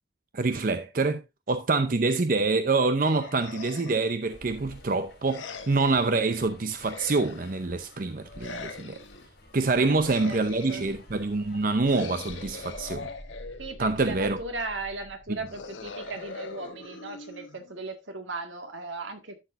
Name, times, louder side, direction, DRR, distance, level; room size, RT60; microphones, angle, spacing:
voice 1, 0.3-1.2 1.5-9.0 9.5-13.1 13.8-14.4 15.3-15.4, right 3 dB, 45° right, 0.6 m, -26 dB
sound 1, 3.0-4.1 5.3-6.0 6.8-7.7 8.4-9.3 9.9-11.0 11.8-13.9 15.5-17.9, left 4 dB, 90° left, 1.2 m, -42 dB
sound 2, 4.2-12.7, left 1 dB, 60° left, 3.6 m, -51 dB
sound 3, 12.3-16.3, equal, 10° left, 1.2 m, -48 dB
voice 2, 13.6-19.4, right 3 dB, 90° right, 1.8 m, -37 dB
12.0 x 6.5 x 2.5 m
head